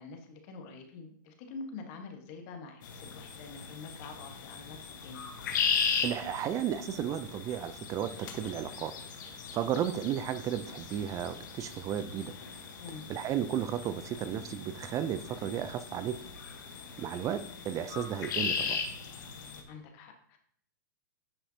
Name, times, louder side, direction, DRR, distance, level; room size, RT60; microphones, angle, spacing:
voice 1, 0.0-5.3 12.8-13.1 17.3-17.4 19.7-20.4, left 4 dB, 50° left, 4 dB, 1.4 m, -46 dB
sound 1, 2.8-19.6, left 6 dB, 70° left, 1.2 m, -38 dB
voice 2, 6.0-8.9 9.5-12.3 13.1-16.2 17.0-18.8, right 10 dB, 30° right, 12 dB, 0.4 m, -34 dB
9.9 x 5.7 x 2.8 m, 0.62 s
hypercardioid pair, 120°, 11 cm